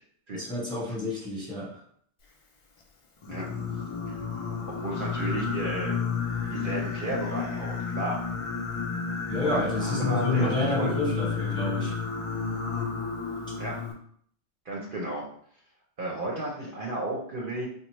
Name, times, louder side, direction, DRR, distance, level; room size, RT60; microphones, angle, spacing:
voice 1, 0.3-1.8 9.3-11.9, left 2 dB, 5° left, -5 dB, 0.8 m, -29 dB
Singing, 3.2-13.9, left 5 dB, 55° left, 0.3 m, -31 dB
voice 2, 4.7-6.0 6.4-8.2 9.4-10.9 13.6-13.7 14.7-15.2 16.0-17.7, right 1 dB, 55° right, -3 dB, 0.8 m, -33 dB
3.9 x 2.1 x 3.0 m, 0.63 s
omnidirectional pair, 1.2 m